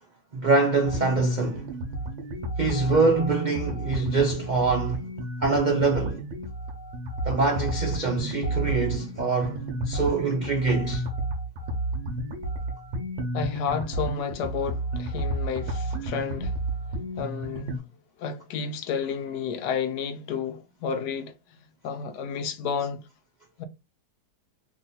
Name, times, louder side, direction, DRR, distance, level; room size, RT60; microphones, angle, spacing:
voice 1, 0.3-1.7 2.6-5.1 5.4-6.2 7.2-11.1, right 3 dB, 85° right, 0.4 m, -24 dB
sound 1, 0.8-17.8, right 1 dB, 50° right, 1.0 m, -31 dB
voice 2, 13.3-16.5 17.2-17.8 18.2-21.3 21.8-23.0 23.6-23.7, left 6 dB, 80° left, 1.2 m, -31 dB
3.0 x 2.7 x 3.9 m
omnidirectional pair, 1.8 m